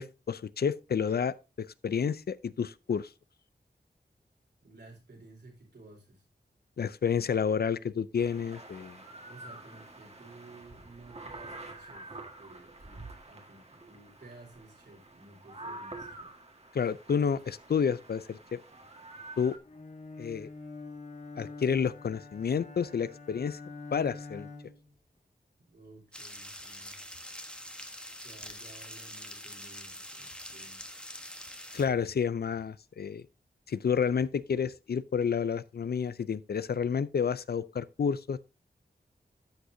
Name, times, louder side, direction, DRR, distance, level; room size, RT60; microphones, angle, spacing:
voice 1, 0.0-1.3 1.8-3.1 6.8-9.0 16.7-18.6 19.4-19.6 20.2-20.5 21.4-23.6 23.9-24.5 31.7-33.2 33.7-38.5, left 6 dB, 70° left, 0.5 m, -30 dB
voice 2, 4.6-6.2 9.2-16.3 25.7-27.0 28.2-30.9, right 2 dB, 85° right, 4.2 m, -54 dB
sound 1, 8.2-19.6, right 2 dB, 40° right, 1.7 m, -48 dB
Bowed string instrument, 19.6-24.9, left 3 dB, 40° left, 1.6 m, -45 dB
sound 2, 26.1-31.9, equal, 5° left, 1.2 m, -45 dB
13.0 x 6.4 x 2.7 m
wide cardioid pair, 75°, 17 cm